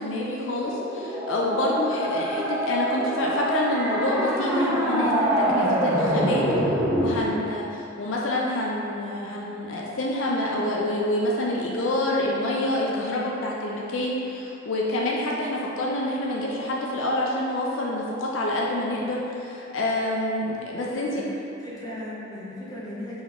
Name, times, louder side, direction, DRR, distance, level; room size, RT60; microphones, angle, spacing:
voice 1, 0.0-5.1 5.5-6.4 7.0-21.1, left 1 dB, 70° left, -3 dB, 0.4 m, -27 dB
sound 1, 0.6-7.2, equal, 5° right, 0.5 m, -25 dB
voice 2, 20.7-23.2, left 1 dB, 20° left, -9 dB, 0.8 m, -37 dB
3.7 x 3.0 x 3.6 m, 2.8 s
head